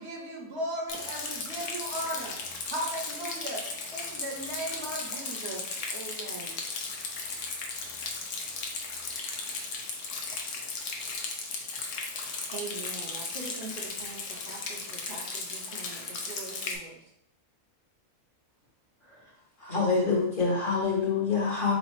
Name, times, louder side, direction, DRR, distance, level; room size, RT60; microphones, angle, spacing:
voice 1, 0.0-2.4 2.7-6.6, right 1 dB, 55° right, 1.0 m, -37 dB
Rain, 0.9-16.8, left 4 dB, 80° left, 1.2 m, -36 dB
voice 2, 12.5-17.0, right 3 dB, 75° right, 0.4 m, -43 dB
voice 3, 19.6-21.7, left 4 dB, 40° left, 0.9 m, -26 dB
4.0 x 3.1 x 3.0 m
omnidirectional pair, 1.5 m